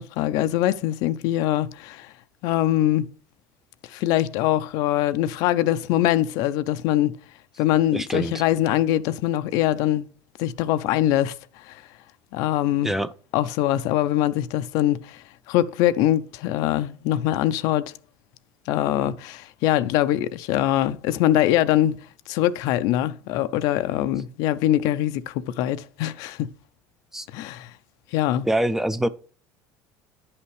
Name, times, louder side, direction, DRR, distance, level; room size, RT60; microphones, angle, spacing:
voice 1, 0.0-2.1 2.4-3.1 3.9-7.2 7.6-10.1 10.4-11.4 11.6-11.8 12.3-12.9 13.3-17.9 18.7-22.0 22.3-26.5 27.3-27.7 28.1-28.5, left 13 dB, 70° left, 0.5 m, -23 dB
voice 2, 7.9-8.3 12.8-13.1 27.1-27.3 28.4-29.1, right 1 dB, 5° right, 0.4 m, -24 dB
10.0 x 5.7 x 3.2 m
cardioid pair, 125°, 7 cm